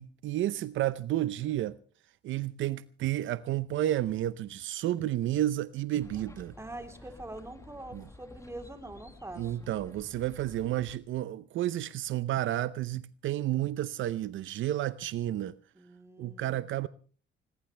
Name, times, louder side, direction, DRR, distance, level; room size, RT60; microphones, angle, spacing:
voice 1, 0.0-1.8 2.2-6.6 7.9-8.0 9.4-15.6 16.2-16.9, right 13 dB, 75° right, 0.7 m, -31 dB
sound 1, 6.0-11.0, left 2 dB, 15° left, 1.7 m, -52 dB
voice 2, 6.6-9.7 15.8-16.7, right 1 dB, 15° right, 3.7 m, -44 dB
21.0 x 20.5 x 3.4 m
cardioid pair, 90°, 20 cm